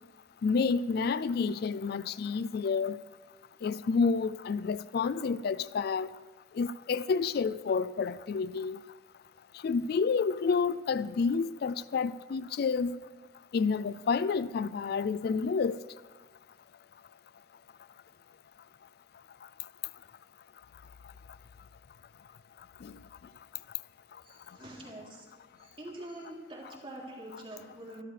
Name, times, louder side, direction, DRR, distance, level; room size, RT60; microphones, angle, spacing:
voice 1, 0.4-3.0 3.6-6.1 6.5-8.8 9.6-13.0 13.5-15.8 22.8-22.9, left 5 dB, 55° left, 0.3 m, -29 dB
voice 2, 24.2-25.3 25.6-28.0, right 1 dB, 30° right, 3.4 m, -45 dB
25.5 x 12.5 x 3.4 m
head